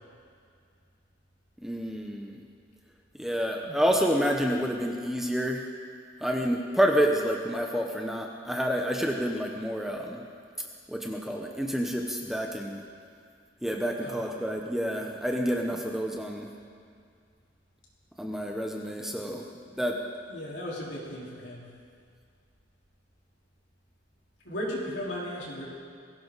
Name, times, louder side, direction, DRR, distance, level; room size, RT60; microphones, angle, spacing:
voice 1, 1.6-2.4 3.2-5.6 6.2-10.3 10.9-12.9 13.6-16.5 18.2-19.5 19.8-20.0, equal, ahead, 1 dB, 0.9 m, -28 dB
voice 2, 20.3-21.7 24.4-25.7, left 1 dB, 65° left, -5 dB, 4.3 m, -36 dB
21.5 x 16.5 x 4.1 m, 2.2 s
head